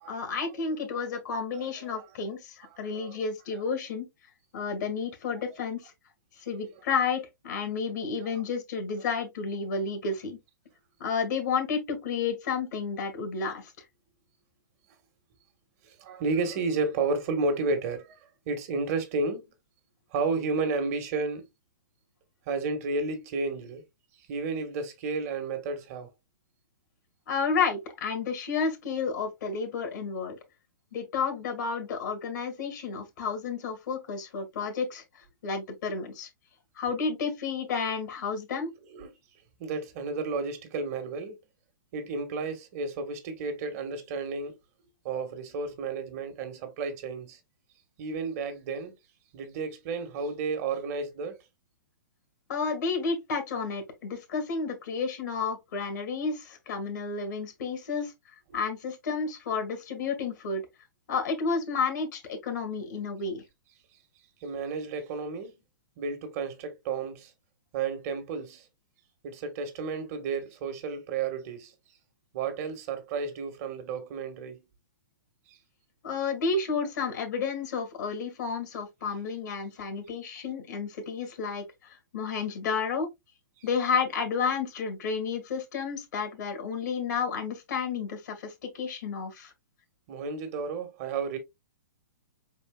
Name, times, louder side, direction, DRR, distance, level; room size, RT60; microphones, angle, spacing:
voice 1, 0.1-4.1 4.5-5.9 6.4-10.4 11.0-13.7 27.3-30.4 30.9-35.0 35.4-36.3 36.8-38.7 52.5-58.1 58.5-60.6 61.1-63.4 76.0-83.1 83.6-89.5, left 5 dB, 60° left, 2.1 m, -31 dB
voice 2, 2.7-3.2 8.2-8.4 15.8-18.1 18.5-19.4 20.1-21.5 22.5-23.8 24.3-26.1 38.9-39.1 39.6-41.4 41.9-44.6 45.0-47.4 48.0-48.9 49.3-51.4 64.4-65.5 66.0-67.3 67.7-68.6 69.2-71.7 72.3-74.6 75.5-75.6 90.1-91.4, right 4 dB, 45° right, 1.4 m, -32 dB
5.1 x 4.4 x 2.3 m
hypercardioid pair, 120°, 11 cm